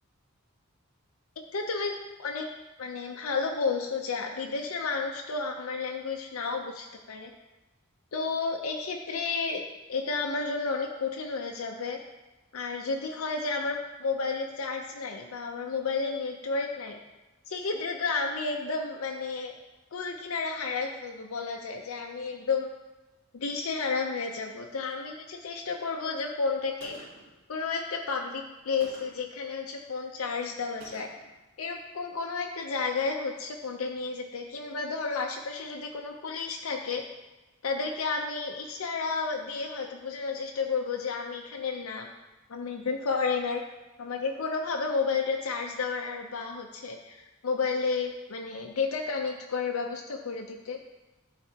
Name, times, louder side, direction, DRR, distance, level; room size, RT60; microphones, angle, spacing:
voice 1, 1.5-2.5 2.8-7.3 8.1-9.6 9.9-12.0 12.5-17.0 17.5-19.5 19.9-22.7 23.3-27.0 27.5-31.1 31.6-37.0 37.6-42.1 42.5-43.6 44.0-50.8, left 4 dB, 90° left, 1 dB, 0.6 m, -32 dB
Gunshot gunfire, 26.8-27.4 28.8-29.3 30.8-31.4, right 2 dB, 90° right, 2.1 m, -49 dB
12.0 x 4.1 x 2.8 m, 1.1 s
head